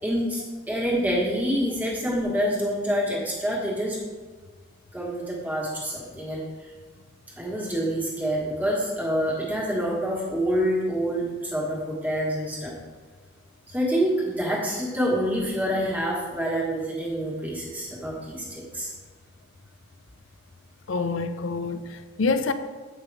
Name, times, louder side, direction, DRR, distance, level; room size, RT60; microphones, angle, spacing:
voice 1, 0.0-4.0 4.9-6.4 7.4-12.7 13.7-18.9, equal, 10° right, -4 dB, 1.4 m, -27 dB
voice 2, 20.9-22.5, left 4 dB, 70° left, 10 dB, 0.5 m, -26 dB
8.2 x 5.4 x 3.4 m, 1.4 s
head